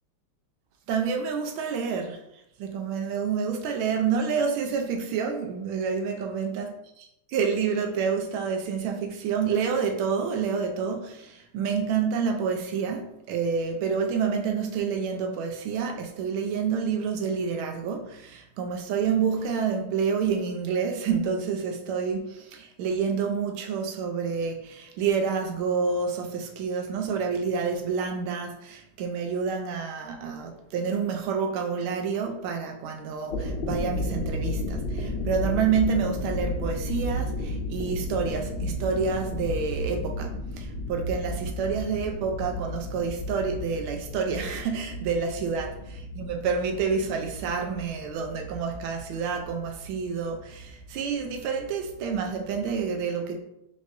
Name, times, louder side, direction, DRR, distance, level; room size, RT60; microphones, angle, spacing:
voice 1, 0.9-2.2 2.6-6.7 7.3-53.4, right 6 dB, 85° right, 3 dB, 1.4 m, -28 dB
sound 1, 33.1-52.8, left 1 dB, 80° left, 1.6 m, -34 dB
5.2 x 3.1 x 2.5 m, 0.81 s
omnidirectional pair, 2.3 m